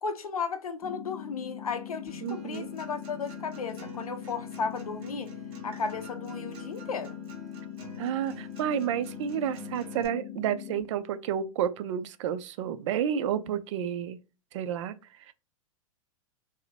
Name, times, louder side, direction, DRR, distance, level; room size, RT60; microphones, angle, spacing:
voice 1, 0.0-5.3 5.6-7.2, left 5 dB, 90° left, 0.5 m, -34 dB
sound 1, 0.8-10.8, left 10 dB, 45° left, 0.9 m, -41 dB
Acoustic guitar, 2.1-10.1, right 3 dB, 30° right, 1.1 m, -48 dB
voice 2, 2.2-2.7 8.0-14.2 14.5-14.9 15.3-15.4, right 9 dB, 60° right, 0.4 m, -30 dB
2.7 x 2.0 x 2.5 m
hypercardioid pair, 100°, 18 cm